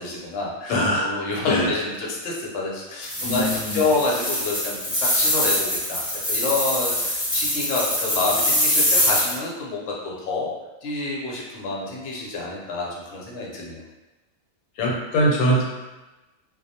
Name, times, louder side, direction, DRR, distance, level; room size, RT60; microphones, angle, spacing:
voice 1, 0.0-3.5 3.7-10.5 10.8-13.8, left 3 dB, 65° left, -4 dB, 0.8 m, -28 dB
voice 2, 0.7-1.1 1.4-1.7 3.2-3.8 14.8-15.6, equal, 90° left, -3 dB, 1.0 m, -22 dB
sound 1, 3.0-9.3, left 1 dB, 15° left, 0.8 m, -23 dB
2.3 x 2.0 x 2.7 m, 1.1 s
omnidirectional pair, 1.5 m